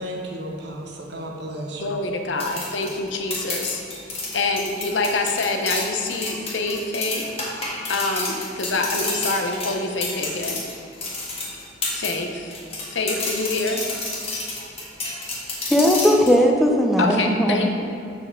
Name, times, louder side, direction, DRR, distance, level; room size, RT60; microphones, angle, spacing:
voice 1, 0.0-2.0, right 1 dB, 65° right, 0 dB, 1.0 m, -33 dB
voice 2, 1.8-3.8 4.3-7.3 7.9-10.6 11.9-12.5 12.9-13.8 17.0-17.7, left 3 dB, 80° left, 4 dB, 0.8 m, -26 dB
sound 1, 2.4-12.2 12.5-16.3, left 2 dB, 35° left, 1.4 m, -30 dB
voice 3, 15.7-17.6, equal, ahead, 1 dB, 0.6 m, -18 dB
6.8 x 6.7 x 3.7 m, 2.6 s
head